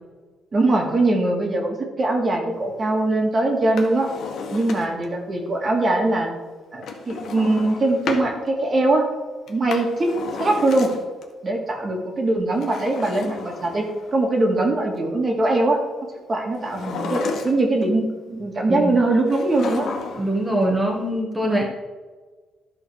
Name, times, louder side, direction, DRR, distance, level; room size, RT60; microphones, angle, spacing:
voice 1, 0.5-4.1 4.5-6.3 6.7-9.0 9.5-10.1 10.4-10.9 11.4-13.8 14.1-15.8 16.3-19.9, right 2 dB, 35° right, 1 dB, 2.3 m, -21 dB
Drawer open or close, 3.6-5.1 6.8-8.3 9.5-11.2 12.5-14.1 16.6-17.8 19.3-20.4 20.6-20.7, left 4 dB, 65° left, 1.6 m, -32 dB
voice 2, 20.2-21.6, right 1 dB, 10° right, -1 dB, 1.9 m, -23 dB
12.0 x 4.5 x 6.5 m, 1.4 s
cardioid pair, 90°, 0 cm